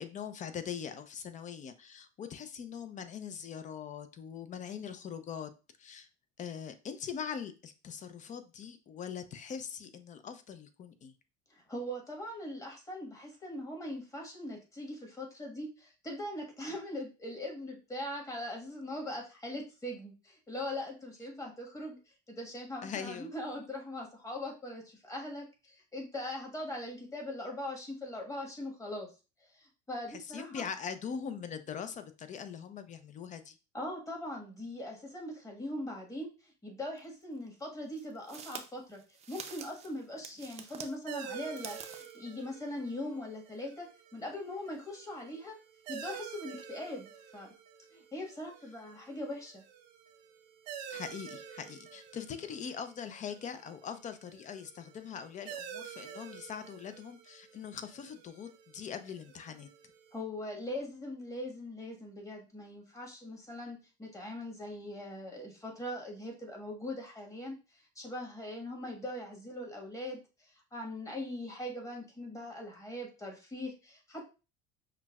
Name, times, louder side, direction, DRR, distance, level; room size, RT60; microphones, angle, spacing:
voice 1, 0.0-5.5 5.8-6.1 6.4-11.1 22.8-23.3 30.1-33.6 50.9-59.7, left 7 dB, 35° left, 10 dB, 0.5 m, -42 dB
voice 2, 11.5-22.0 22.3-29.1 29.4-30.6 33.7-39.0 39.3-45.6 45.9-47.5 47.9-49.6 60.1-74.3, left 1 dB, 15° left, 1 dB, 1.4 m, -41 dB
sound 1, 37.0-37.1 37.9-40.9 41.4-42.2, right 6 dB, 30° right, 0.5 m, -46 dB
sound 2, 41.1-60.2, right 8 dB, 85° right, 0.7 m, -49 dB
5.7 x 2.2 x 2.3 m, 0.31 s
supercardioid pair, 95°, 21 cm